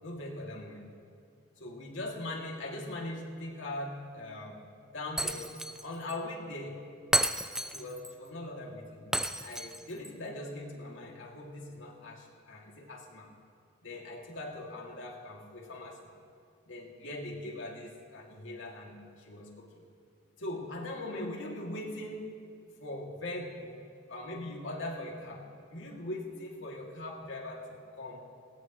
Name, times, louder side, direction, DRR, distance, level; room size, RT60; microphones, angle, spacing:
voice 1, 0.0-0.9 1.6-4.7 4.9-6.8 7.7-9.1 9.4-13.3 13.8-16.1 16.6-19.8 20.4-22.3 22.8-23.8 24.1-28.3, left 1 dB, 75° left, -1 dB, 2.4 m, -41 dB
Shatter, 5.2-5.8 6.1-6.2 7.1-8.1 9.1-10.1, right 1 dB, 5° right, 0.3 m, -31 dB
21.0 x 17.0 x 3.1 m, 2.4 s
head